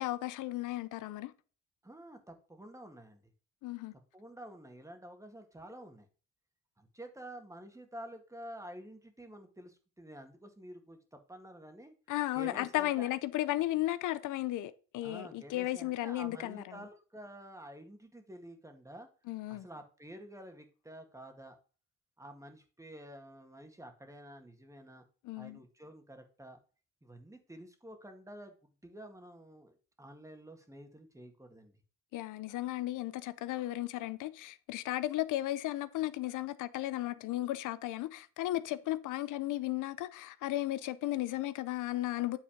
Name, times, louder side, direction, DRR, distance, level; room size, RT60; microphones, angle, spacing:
voice 1, 0.0-1.3 3.6-3.9 12.1-16.8 19.3-19.7 25.2-25.6 32.1-42.4, left 15 dB, 85° left, 0.6 m, -35 dB
voice 2, 1.8-3.2 4.1-6.1 6.8-11.9 12.3-13.1 15.0-19.1 19.5-21.6 22.2-25.1 25.4-26.6 27.0-28.5 28.8-31.7, right 1 dB, 10° right, 1.9 m, -50 dB
9.1 x 4.0 x 5.0 m
cardioid pair, 90°, 30 cm